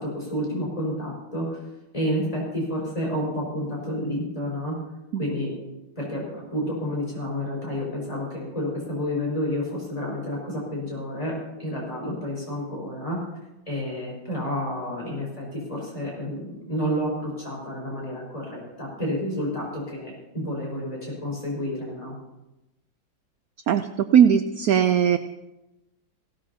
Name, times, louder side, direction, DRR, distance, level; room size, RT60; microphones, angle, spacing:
voice 1, 0.0-1.6 1.9-4.7 5.2-5.5 5.9-6.2 6.5-11.3 11.6-13.2 13.7-22.1, equal, 15° left, -3 dB, 5.2 m, -30 dB
voice 2, 23.7-25.2, right 8 dB, 75° right, 9 dB, 0.8 m, -19 dB
18.0 x 16.5 x 2.8 m, 0.98 s
omnidirectional pair, 2.1 m